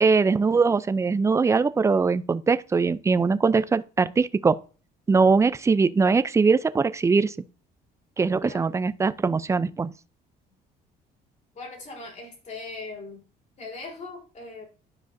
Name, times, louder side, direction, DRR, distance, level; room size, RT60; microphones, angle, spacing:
voice 1, 0.0-4.6 5.1-7.3 8.2-9.9, right 4 dB, 15° right, 0.4 m, -21 dB
voice 2, 8.4-8.8 11.5-13.2 13.6-14.7, left 3 dB, 45° left, 3.9 m, -39 dB
11.5 x 4.9 x 2.6 m
cardioid pair, 110°, 17 cm